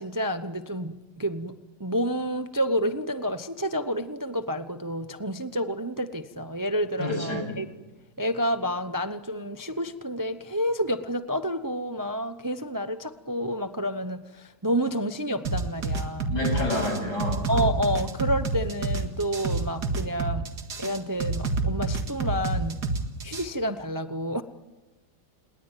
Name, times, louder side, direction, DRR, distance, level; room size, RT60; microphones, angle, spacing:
voice 1, 0.0-7.7 8.2-16.3 17.5-20.5 20.8-22.9 23.2-24.4, equal, 20° right, 10 dB, 0.6 m, -29 dB
voice 2, 7.0-7.4 16.3-17.4, left 1 dB, 85° left, 3 dB, 8.6 m, -28 dB
sound 1, 15.4-23.4, right 3 dB, 85° right, 2.5 m, -28 dB
28.5 x 20.5 x 9.1 m, 1.2 s
omnidirectional pair, 1.7 m